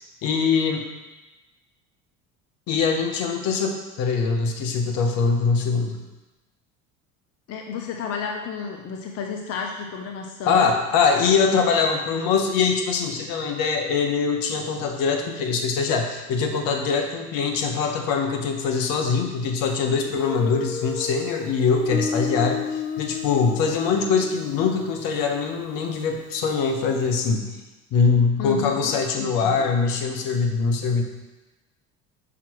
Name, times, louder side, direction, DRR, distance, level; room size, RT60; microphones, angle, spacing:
voice 1, 0.2-0.9 2.7-6.0 10.5-27.5 27.9-31.0, left 5 dB, 60° left, 4 dB, 1.0 m, -23 dB
voice 2, 7.5-10.7 28.4-29.7, left 5 dB, 40° left, 2 dB, 0.7 m, -32 dB
Guitar, 20.2-26.8, left 7 dB, 85° left, 0.6 m, -33 dB
6.0 x 5.8 x 3.1 m, 1.1 s
hypercardioid pair, 70°, 38 cm